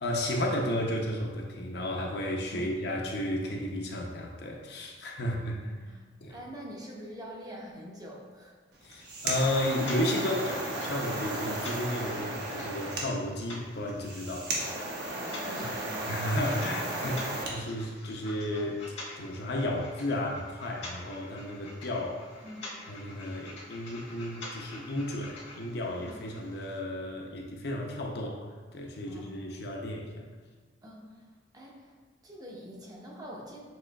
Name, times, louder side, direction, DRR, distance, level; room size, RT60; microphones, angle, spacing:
voice 1, 0.0-5.7 6.2-6.4 8.8-14.8 15.6-15.7 16.1-18.8 19.2-22.2 22.9-28.4 28.7-30.3, left 1 dB, 55° left, 1 dB, 0.5 m, -33 dB
voice 2, 5.2-6.0 6.3-8.5 12.1-12.3 15.1-16.0 17.0-17.2 22.4-22.7 26.0-26.1 29.1-29.6 30.8-31.1 31.5-32.0 32.2-33.6, equal, 20° right, -3 dB, 0.6 m, -45 dB
sound 1, 8.8-17.6, right 1 dB, 55° right, 0.8 m, -35 dB
sound 2, 9.7-26.8, left 2 dB, 85° left, 1.4 m, -47 dB
7.4 x 3.0 x 2.3 m, 1.4 s
head